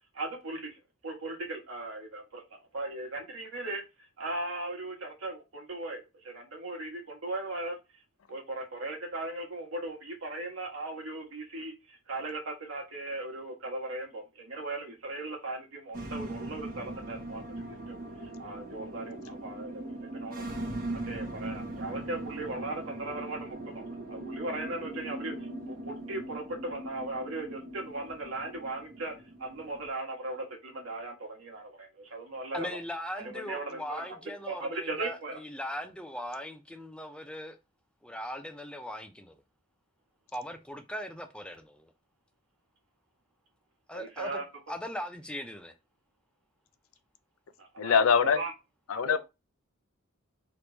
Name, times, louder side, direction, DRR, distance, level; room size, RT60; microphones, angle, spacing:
voice 1, 0.1-3.8 4.2-7.8 8.3-20.4 21.0-29.1 29.4-32.8 33.1-34.1 34.5-35.4 43.9-44.4 47.6-48.5 48.9-49.2, right 2 dB, 85° right, 1.6 m, -38 dB
sound 1, 15.9-29.9, right 1 dB, 45° right, 1.1 m, -40 dB
voice 2, 32.5-37.6 38.0-39.4 40.3-41.9 43.9-44.4 44.7-45.7, equal, 5° left, 0.5 m, -39 dB
voice 3, 47.8-48.4 48.9-49.2, left 6 dB, 80° left, 0.5 m, -23 dB
3.4 x 3.1 x 3.9 m
head